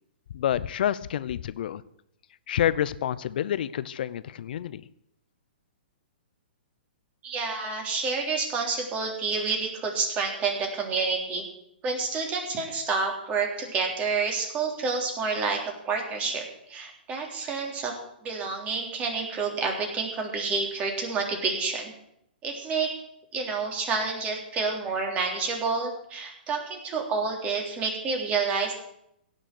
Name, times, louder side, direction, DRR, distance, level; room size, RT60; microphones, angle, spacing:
voice 1, 0.3-1.8 2.5-4.8, left 10 dB, 60° left, 17 dB, 0.7 m, -28 dB
voice 2, 7.2-11.4 11.8-16.4 16.7-17.9 18.2-21.9 22.4-22.9 23.3-28.7, right 4 dB, 25° right, 2 dB, 3.5 m, -29 dB
17.0 x 6.5 x 7.9 m, 0.76 s
hypercardioid pair, 130°, 6 cm